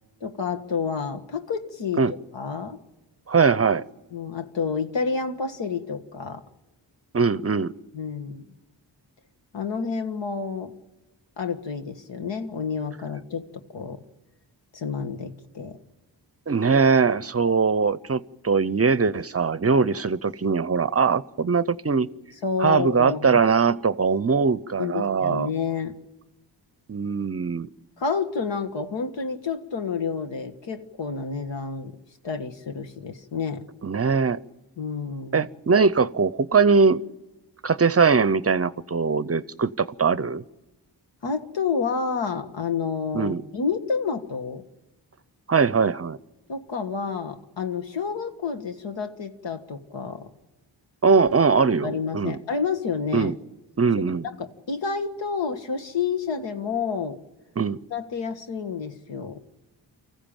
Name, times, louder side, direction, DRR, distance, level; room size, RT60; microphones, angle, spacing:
voice 1, 0.2-2.8 4.1-6.4 7.9-8.4 9.5-10.7 11.4-14.0 14.7-15.8 22.4-23.4 24.8-26.0 28.0-32.0 32.2-33.6 34.8-35.4 41.2-44.6 46.5-50.3 51.8-53.3 54.4-57.2 57.9-59.4, left 5 dB, 80° left, 6 dB, 1.7 m, -29 dB
voice 2, 3.3-3.8 7.1-7.7 16.5-22.1 22.6-25.5 26.9-27.7 33.8-34.4 35.3-37.0 37.6-40.4 43.1-43.4 45.5-46.2 51.0-52.4 53.1-53.3 53.8-54.3 57.6-57.8, right 5 dB, 35° right, 17 dB, 0.6 m, -21 dB
24.5 x 15.0 x 8.9 m, 1.1 s
cardioid pair, 65°, 44 cm